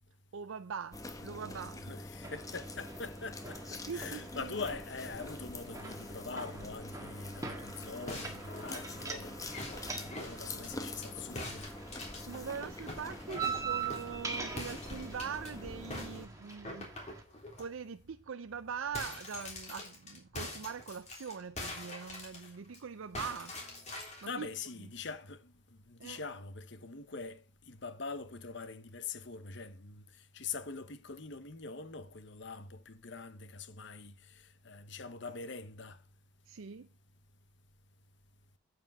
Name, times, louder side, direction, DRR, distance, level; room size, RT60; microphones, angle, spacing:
voice 1, 0.3-1.9 3.8-4.6 12.3-16.9 17.6-23.6 24.2-24.5 26.0-26.2 36.5-36.9, right 6 dB, 75° right, 0.5 m, -42 dB
sound 1, 0.9-16.3, left 1 dB, 15° left, 1.0 m, -45 dB
voice 2, 1.8-11.7 22.3-22.5 24.2-36.0, left 4 dB, 60° left, 1.0 m, -44 dB
sound 2, 2.2-17.2, right 5 dB, 15° right, 1.6 m, -44 dB
sound 3, 8.1-11.1 11.4-14.2 14.6-15.5 15.9-17.7 18.1-18.2 18.5-22.8 23.1-24.3, left 2 dB, 35° left, 3.5 m, -44 dB
9.1 x 8.5 x 3.6 m
head